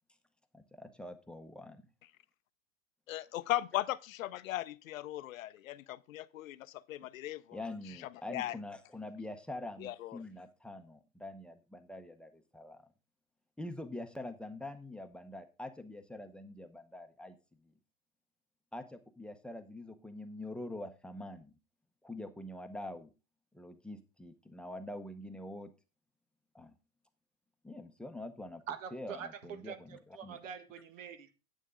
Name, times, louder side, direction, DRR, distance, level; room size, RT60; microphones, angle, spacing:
voice 1, 0.5-1.8 7.5-12.8 13.6-17.3 17.6-17.7 18.7-21.6 22.0-23.1 23.5-25.7 26.5-26.8 27.6-28.6 28.9-30.4, left 1 dB, 5° left, 0.7 m, -45 dB
voice 2, 3.1-7.6 8.3-8.6 9.8-10.2, left 14 dB, 90° left, 0.7 m, -38 dB
voice 3, 28.7-31.4, right 7 dB, 75° right, 1.6 m, -45 dB
9.3 x 8.1 x 3.7 m
supercardioid pair, 130°, 39 cm